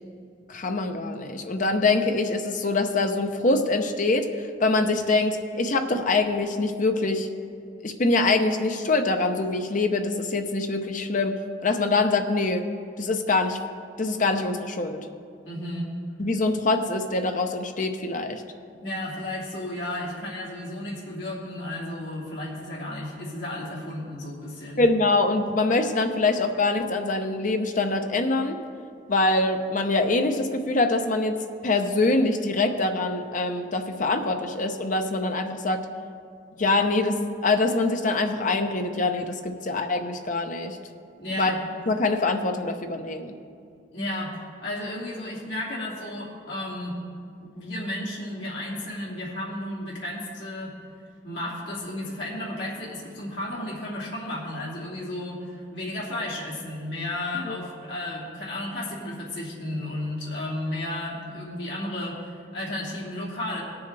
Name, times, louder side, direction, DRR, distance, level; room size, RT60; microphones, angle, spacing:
voice 1, 0.5-7.3 7.8-11.3 11.6-12.6 13.0-13.6 14.0-15.1 16.2-18.4 24.8-28.6 29.1-35.8 36.6-40.8 41.4-41.5 41.9-43.3 57.4-57.6, left 2 dB, 40° left, 6 dB, 0.7 m, -24 dB
voice 2, 15.4-15.9 18.8-24.9 41.2-41.6 43.9-44.4 44.6-47.0 47.4-50.7 51.2-63.6, left 1 dB, 65° left, -6 dB, 2.8 m, -33 dB
18.5 x 7.1 x 3.4 m, 2.3 s
head